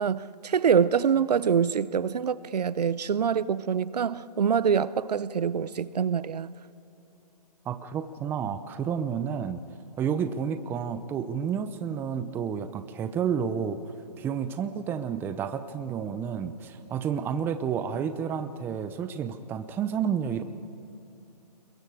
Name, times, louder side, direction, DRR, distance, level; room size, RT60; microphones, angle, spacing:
voice 1, 0.0-6.5, right 7 dB, 75° right, 18 dB, 0.8 m, -25 dB
voice 2, 7.7-9.6 10.0-13.8 14.2-20.4, right 7 dB, 10° right, 10 dB, 0.6 m, -30 dB
28.0 x 22.5 x 4.9 m, 2.9 s
hypercardioid pair, 145°, 21 cm